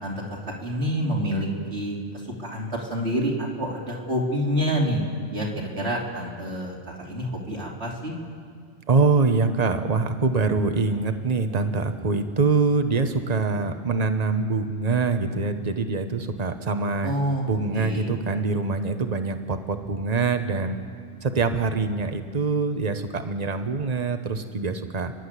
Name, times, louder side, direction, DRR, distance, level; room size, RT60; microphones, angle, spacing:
voice 1, 0.6-2.0 2.4-5.0 5.3-8.1 17.0-17.4 17.7-18.1, equal, 70° right, -2 dB, 3.5 m, -27 dB
voice 2, 8.9-17.1 17.5-20.8 21.2-25.1, right 4 dB, 40° right, 8 dB, 1.2 m, -24 dB
29.5 x 11.5 x 8.3 m, 2.1 s
omnidirectional pair, 1.1 m